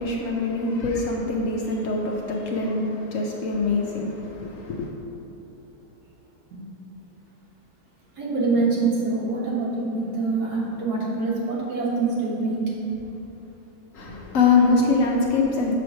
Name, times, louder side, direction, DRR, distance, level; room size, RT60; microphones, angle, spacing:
voice 1, 0.0-4.9 13.9-15.7, left 4 dB, 65° left, 0 dB, 0.9 m, -23 dB
voice 2, 8.2-12.6 14.0-14.1, right 3 dB, 75° right, -5 dB, 1.9 m, -25 dB
6.9 x 3.3 x 6.0 m, 2.9 s
omnidirectional pair, 1.7 m